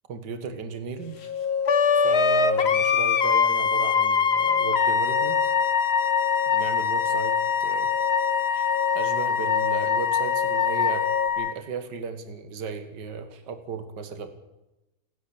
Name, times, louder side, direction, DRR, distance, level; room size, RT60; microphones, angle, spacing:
voice 1, 0.1-1.2 2.0-5.4 6.5-7.9 8.9-11.1 11.4-14.3, right 5 dB, 60° right, 9 dB, 2.3 m, -35 dB
sound 1, 1.0-11.3, left 7 dB, 85° left, 2.9 m, -31 dB
Wind instrument woodwind instrument, 1.7-11.5, left 6 dB, 45° left, 1.0 m, -23 dB
30.0 x 10.5 x 8.6 m, 0.97 s
omnidirectional pair, 2.2 m